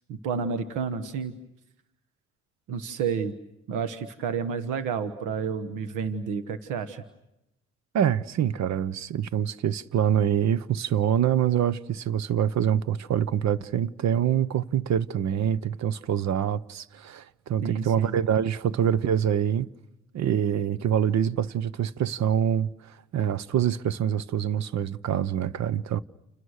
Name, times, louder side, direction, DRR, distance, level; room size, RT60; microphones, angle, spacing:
voice 1, 0.1-1.4 2.7-3.3 3.7-7.0 17.6-18.2, right 6 dB, 90° right, 1.3 m, -30 dB
voice 2, 7.9-19.7 20.1-22.7 23.1-26.0, right 9 dB, 65° right, 0.9 m, -25 dB
29.5 x 28.0 x 6.5 m
cardioid pair, 90°, 30 cm